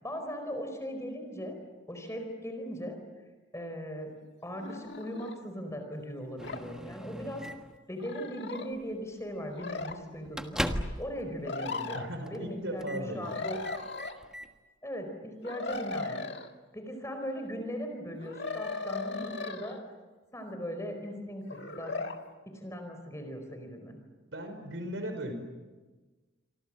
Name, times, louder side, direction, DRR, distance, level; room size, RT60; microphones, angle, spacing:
voice 1, 0.0-1.5 1.9-3.0 3.5-4.1 4.4-7.4 7.9-10.6 11.0-13.6 14.8-16.3 16.7-19.8 20.3-22.1 22.5-24.0, equal, 15° left, 5 dB, 4.7 m, -39 dB
sound 1, 4.6-5.3 6.4-6.6 8.0-8.7 9.5-10.0 11.4-12.1 13.2-14.2 15.4-16.5 18.2-19.8 21.5-22.2, left 4 dB, 55° left, 1.9 m, -37 dB
Microwave oven, 6.4-7.8 8.7-8.9 9.3-9.4 9.8-11.2 11.5-11.6 12.2-12.5 12.8-13.1 13.5-14.5, equal, 5° right, 1.4 m, -38 dB
voice 2, 11.9-13.4 24.3-25.3, equal, 65° right, 7 dB, 5.0 m, -37 dB
28.0 x 24.5 x 7.7 m, 1.3 s
head